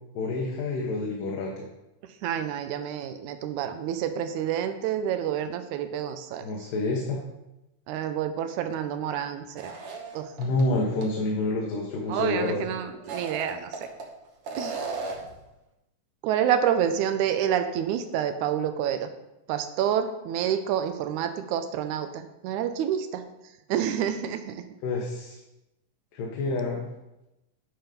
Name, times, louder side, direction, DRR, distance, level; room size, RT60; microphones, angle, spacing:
voice 1, 0.2-1.7 6.4-7.2 10.4-12.6 24.8-25.4 26.1-26.9, left 2 dB, 85° left, -2 dB, 2.8 m, -28 dB
voice 2, 2.2-6.5 7.9-9.7 10.1-10.3 12.1-13.9 14.6-14.7 16.2-19.1 19.5-23.2 23.7-24.6, right 9 dB, 75° right, 8 dB, 1.9 m, -28 dB
sound 1, 9.6-10.6 11.0-11.1 12.9-14.1 14.4-15.4, right 3 dB, 60° right, 1.6 m, -35 dB
9.6 x 4.5 x 5.2 m, 0.94 s
omnidirectional pair, 3.8 m